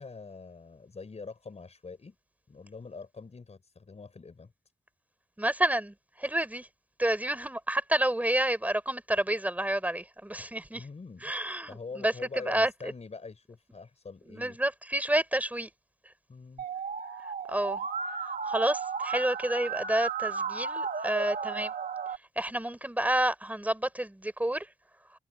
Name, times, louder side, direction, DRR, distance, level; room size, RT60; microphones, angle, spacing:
voice 1, 0.0-2.2 2.5-4.5 10.7-11.2 11.7-14.6 16.3-16.6, left 4 dB, 50° left, 5.3 m, -44 dB
voice 2, 5.4-6.7 7.0-10.8 11.2-12.1 12.5-12.9 14.3-15.7 17.5-17.8 18.2-21.7 22.4-24.7, right 1 dB, 10° right, 4.5 m, -29 dB
Musical instrument, 16.6-22.2, right 5 dB, 75° right, 2.5 m, -34 dB
wide cardioid pair, 140°, 15 cm